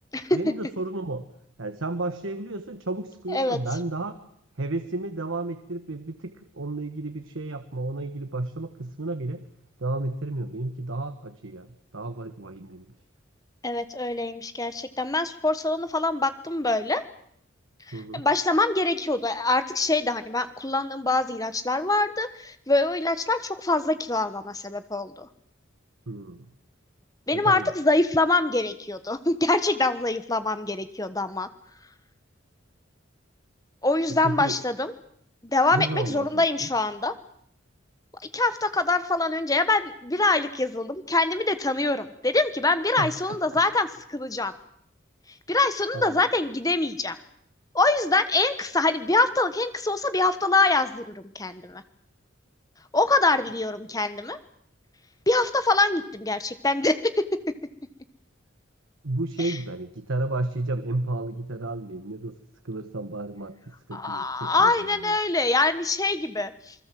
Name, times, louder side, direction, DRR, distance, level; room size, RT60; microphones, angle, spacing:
voice 1, 0.3-1.3 1.6-4.2 4.6-9.4 9.8-11.7 11.9-12.9 17.9-18.2 26.1-26.5 27.3-27.7 34.1-34.6 35.7-36.7 43.0-43.6 45.9-46.2 59.0-62.4 62.6-65.2, right 2 dB, 80° right, 8 dB, 1.4 m, -32 dB
voice 2, 13.6-17.0 17.9-25.3 27.3-31.5 33.8-34.9 35.4-37.1 38.3-44.5 45.5-47.2 47.7-51.8 52.9-54.4 55.3-56.9 59.4-59.5 63.9-66.7, left 2 dB, 15° left, 11 dB, 1.3 m, -24 dB
27.5 x 20.5 x 7.7 m, 0.69 s
head